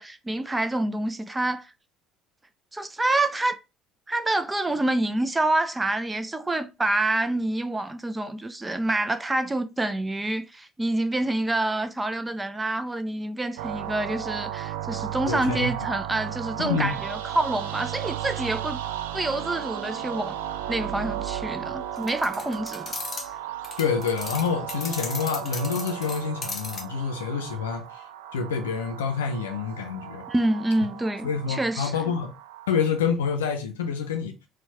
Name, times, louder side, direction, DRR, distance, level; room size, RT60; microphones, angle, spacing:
voice 1, 0.0-1.7 2.7-3.6 4.1-18.8 19.1-20.4 20.7-22.9 30.3-32.0, right 2 dB, 15° right, 0.5 m, -27 dB
sound 1, 13.6-32.9, right 11 dB, 70° right, 0.3 m, -35 dB
voice 2, 15.2-15.7 16.6-16.9 23.8-27.8 28.3-30.3 31.2-32.3 32.7-34.3, left 6 dB, 75° left, 0.5 m, -27 dB
sound 2, 22.0-23.3 23.6-26.8, left 4 dB, 30° left, 0.8 m, -36 dB
4.3 x 2.3 x 2.8 m
figure-of-eight pair, 55°, 0 cm